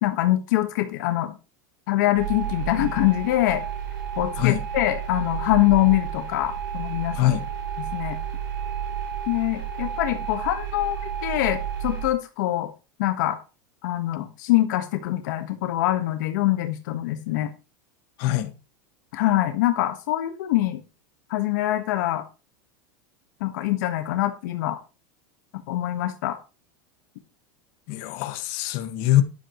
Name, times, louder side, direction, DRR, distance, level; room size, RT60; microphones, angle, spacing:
voice 1, 0.0-1.3 1.9-3.6 4.2-7.4 7.9-8.2 9.3-12.7 13.0-13.4 13.8-17.5 19.1-20.8 21.3-22.2 23.4-24.8 25.7-26.4, left 15 dB, 70° left, 1.5 m, -24 dB
sound 1, 2.1-12.1, right 8 dB, 85° right, 5.5 m, -31 dB
voice 2, 7.1-7.5 18.2-18.5 27.9-29.2, left 14 dB, 55° left, 1.8 m, -23 dB
12.5 x 11.5 x 3.1 m
supercardioid pair, 145°, 10 cm